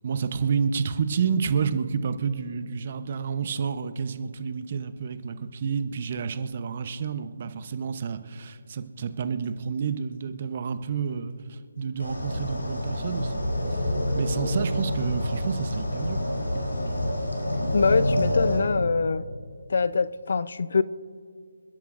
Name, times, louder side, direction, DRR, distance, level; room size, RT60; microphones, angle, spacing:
voice 1, 0.0-13.3 14.1-16.2, right 6 dB, 40° right, 11 dB, 0.8 m, -29 dB
sound 1, 12.0-18.6, left 1 dB, 80° left, 3.7 m, -27 dB
voice 2, 17.7-19.3 19.7-20.8, left 4 dB, 55° left, 16 dB, 0.5 m, -24 dB
28.0 x 10.5 x 2.6 m, 2.2 s
figure-of-eight pair, 155°, 0 cm